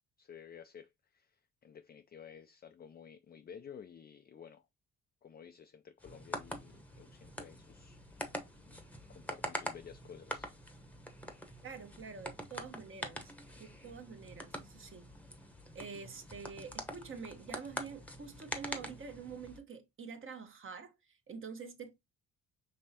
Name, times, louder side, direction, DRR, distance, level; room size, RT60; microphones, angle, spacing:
voice 1, 0.2-4.7 5.2-8.4 8.7-8.8 9.1-10.5, left 7 dB, 30° left, 0.4 m, -53 dB
sound 1, 6.0-19.6, equal, 5° left, 0.9 m, -45 dB
voice 2, 11.6-15.1 15.7-21.9, right 5 dB, 45° right, 1.1 m, -47 dB
5.4 x 3.1 x 2.8 m
cardioid pair, 90°, 30 cm